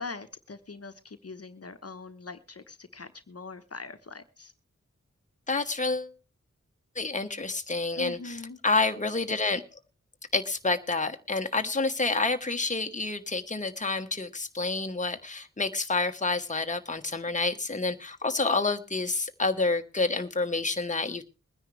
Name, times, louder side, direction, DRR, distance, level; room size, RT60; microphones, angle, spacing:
voice 1, 0.0-4.5 8.0-8.6, left 4 dB, 55° left, 10 dB, 1.1 m, -42 dB
voice 2, 5.5-6.1 6.9-8.2 8.6-9.6 10.3-21.2, left 3 dB, 25° left, 7 dB, 1.1 m, -28 dB
22.5 x 9.9 x 3.2 m, 0.30 s
wide cardioid pair, 80°, 29 cm